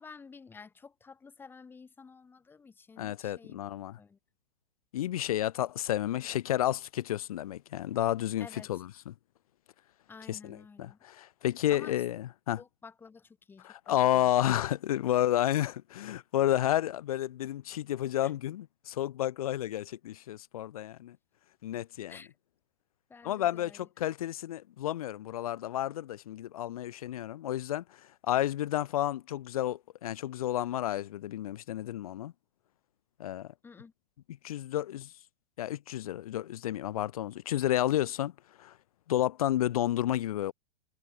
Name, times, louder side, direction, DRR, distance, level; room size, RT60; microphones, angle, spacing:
voice 1, 0.0-3.6 4.0-4.2 8.4-8.7 10.1-11.0 11.7-12.0 12.6-14.7 18.2-18.3 22.1-22.3 23.1-23.9 33.6-33.9, left 5 dB, 5° left, 3.3 m, -51 dB
voice 2, 3.0-4.0 4.9-9.1 10.3-12.6 13.6-21.2 21.6-22.2 23.2-27.8 28.2-32.3 33.2-33.5 34.4-35.1 35.6-38.3 38.6-38.7 39.1-40.5, left 13 dB, 40° left, 0.4 m, -31 dB
supercardioid pair, 180°, 31 cm